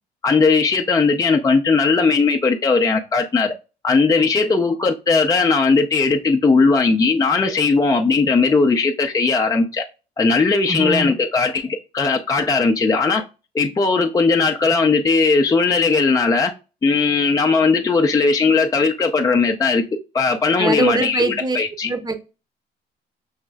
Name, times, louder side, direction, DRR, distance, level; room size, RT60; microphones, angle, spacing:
voice 1, 0.2-3.5 3.8-9.8 10.2-13.2 13.5-16.5 16.8-19.8 20.1-21.9, left 4 dB, 20° left, 0.6 m, -18 dB
voice 2, 10.7-11.1 20.6-21.6 21.8-22.1, right 3 dB, 25° right, 0.9 m, -22 dB
6.4 x 3.0 x 2.3 m
cardioid pair, 110°, 17 cm